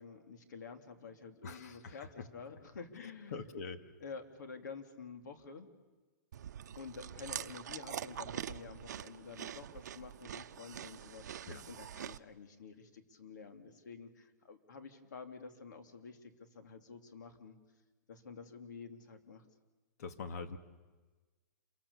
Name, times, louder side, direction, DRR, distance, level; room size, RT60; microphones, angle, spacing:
voice 1, 0.0-3.4 4.0-5.7 6.8-17.6 18.1-19.4, left 5 dB, 80° left, 6 dB, 3.1 m, -50 dB
voice 2, 1.4-2.3 3.0-3.8 11.5-11.6 20.0-20.6, left 4 dB, 60° left, 7 dB, 2.3 m, -44 dB
Chewing mastication, 6.3-12.2, right 10 dB, 70° right, 0.8 m, -44 dB
28.0 x 23.5 x 7.2 m, 1.3 s
hypercardioid pair, 155°, 10 cm